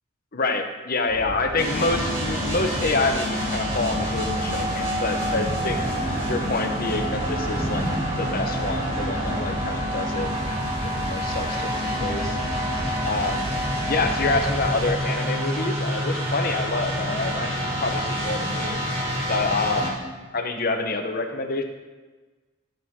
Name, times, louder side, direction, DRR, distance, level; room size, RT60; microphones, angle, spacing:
voice 1, 0.3-5.8 6.3-7.8 8.2-10.3 10.8-12.4 13.0-13.5 13.9-18.8 19.3-20.0 20.3-21.6, left 3 dB, 45° left, 4 dB, 1.0 m, -27 dB
sound 1, 1.1-15.4, right 1 dB, 15° right, 0.7 m, -34 dB
sound 2, 1.6-19.9, equal, 30° right, 2.6 m, -27 dB
13.0 x 6.5 x 3.7 m, 1.3 s
head